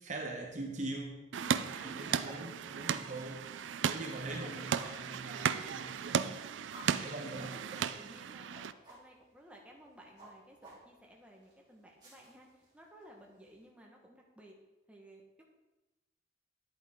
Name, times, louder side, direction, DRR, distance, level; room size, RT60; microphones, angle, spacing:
voice 1, 0.0-1.2 1.5-3.4 3.8-6.3 6.8-7.9, right 2 dB, 40° right, 2 dB, 0.9 m, -42 dB
sound 1, 1.3-8.7, right 7 dB, 85° right, 0.4 m, -36 dB
voice 2, 1.4-2.5 6.0-6.5 7.1-8.5 8.9-14.5 14.9-15.4, equal, 5° right, -1 dB, 1.3 m, -57 dB
sound 2, 1.4-13.7, right 1 dB, 25° right, 3.3 m, -58 dB
10.5 x 8.9 x 3.7 m, 1.1 s
head